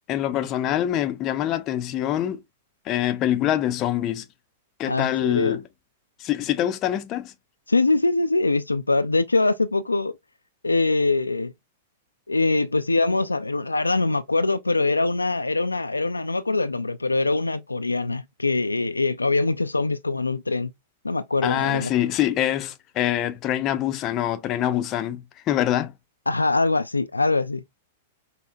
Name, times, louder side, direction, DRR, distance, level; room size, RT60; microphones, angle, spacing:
voice 1, 0.1-2.4 2.9-4.3 4.8-5.6 6.2-7.3 21.4-25.9, left 12 dB, 35° left, 0.5 m, -25 dB
voice 2, 4.9-5.6 7.7-10.1 10.6-11.5 12.3-20.7 21.0-21.9 26.3-27.6, left 3 dB, 85° left, 0.3 m, -23 dB
5.5 x 2.1 x 2.5 m
figure-of-eight pair, 100°, 0 cm